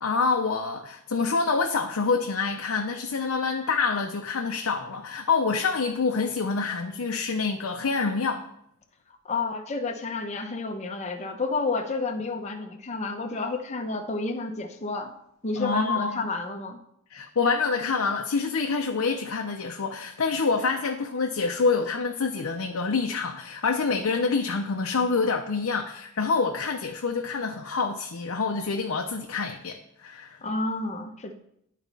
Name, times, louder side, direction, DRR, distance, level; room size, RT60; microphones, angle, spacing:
voice 1, 0.0-8.4 15.5-16.3 17.1-30.4, left 4 dB, 70° left, 3 dB, 0.6 m, -26 dB
voice 2, 9.2-15.1 15.4-16.8 30.4-31.3, left 3 dB, 30° left, 4 dB, 0.8 m, -30 dB
11.0 x 4.1 x 4.0 m, 0.74 s
head